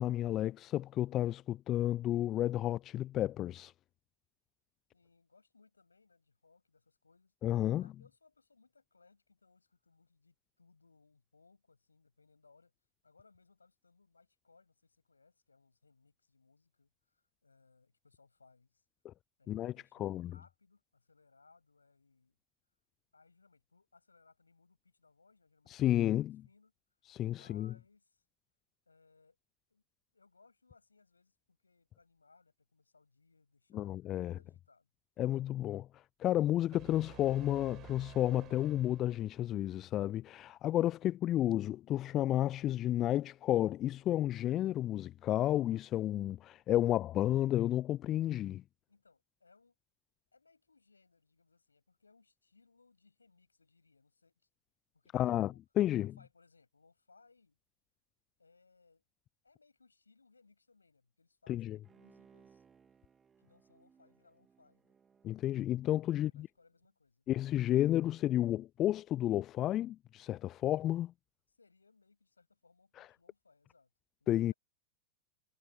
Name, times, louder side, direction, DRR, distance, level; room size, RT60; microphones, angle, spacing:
voice 1, 0.0-3.7 7.4-7.9 19.0-19.1 19.5-19.7 20.0-20.3 25.7-26.4 27.1-27.7 33.7-34.3 35.2-35.9 36.2-48.6 55.1-56.1 61.5-61.8 65.2-66.5 67.3-71.1 73.0-73.1 74.3-74.5, left 13 dB, 30° left, 0.3 m, -32 dB
voice 2, 4.9-7.3 7.8-12.7 13.0-18.8 19.4-22.4 23.1-26.7 27.3-28.2 28.9-29.4 29.7-29.8 30.1-33.9 34.2-34.9 48.9-49.7 50.3-54.4 54.9-55.6 55.9-57.6 58.4-59.0 59.4-62.6 63.4-64.9 66.2-67.3 71.5-73.9 74.2-74.5, left 4 dB, 80° left, 7.5 m, -67 dB
sound 1, 36.7-39.6, right 15 dB, 35° right, 6.1 m, -53 dB
Bowed string instrument, 61.8-66.4 66.8-66.9, right 6 dB, 20° right, 2.8 m, -66 dB
figure-of-eight pair, 90°, 0 cm